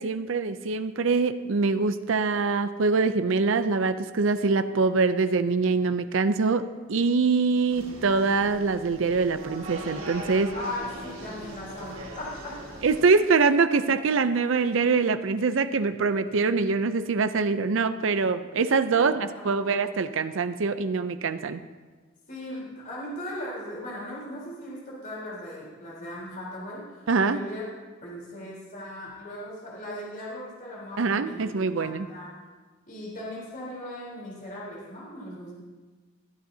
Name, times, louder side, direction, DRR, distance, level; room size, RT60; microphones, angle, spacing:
voice 1, 0.0-10.5 12.8-21.6 27.1-27.4 31.0-32.1, right 4 dB, 70° right, 10 dB, 0.5 m, -24 dB
sound 1, 7.7-13.0, right 1 dB, 90° right, 2.2 m, -40 dB
voice 2, 10.5-12.8 13.8-14.2 18.9-19.8 22.3-26.8 27.2-27.6 28.0-32.4 32.9-35.5, left 1 dB, 45° left, -5 dB, 3.8 m, -38 dB
20.5 x 12.0 x 2.8 m, 1.3 s
head